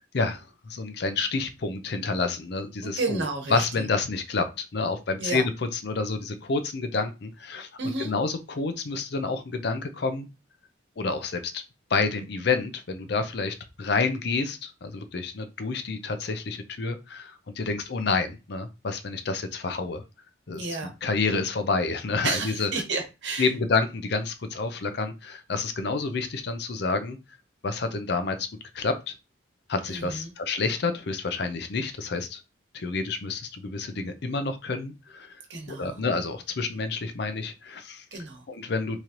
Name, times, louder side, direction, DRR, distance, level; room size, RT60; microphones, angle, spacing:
voice 1, 0.1-3.2 3.5-5.5 5.8-7.7 8.0-10.3 11.0-11.6 11.9-20.0 20.5-22.7 23.4-27.2 27.6-28.5 28.7-29.1 29.7-32.4 32.7-35.4 35.7-38.0 38.5-39.0, left 4 dB, 55° left, 9 dB, 0.5 m, -29 dB
voice 2, 2.8-3.8 5.2-5.4 7.8-8.1 20.6-20.9 22.2-23.5 29.9-30.3 35.5-36.0 38.1-38.4, right 3 dB, 60° right, 2 dB, 1.1 m, -31 dB
3.7 x 3.0 x 2.9 m, 0.28 s
head